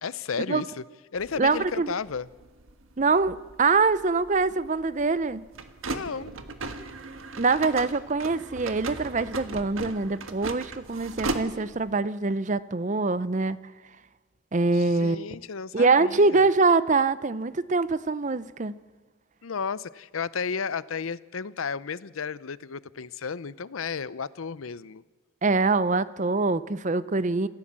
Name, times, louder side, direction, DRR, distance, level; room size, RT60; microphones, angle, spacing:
voice 1, 0.0-0.8 1.1-2.3 5.9-6.3 14.7-16.5 19.4-25.0, left 5 dB, 90° left, 18 dB, 0.7 m, -33 dB
sound 1, 1.2-11.9, right 3 dB, 85° right, 1.6 m, -38 dB
voice 2, 1.4-1.9 3.0-5.4 7.4-13.6 14.5-15.3 15.7-18.7 25.4-27.5, right 3 dB, 35° right, 16 dB, 0.6 m, -24 dB
27.5 x 15.5 x 7.5 m, 1.4 s
head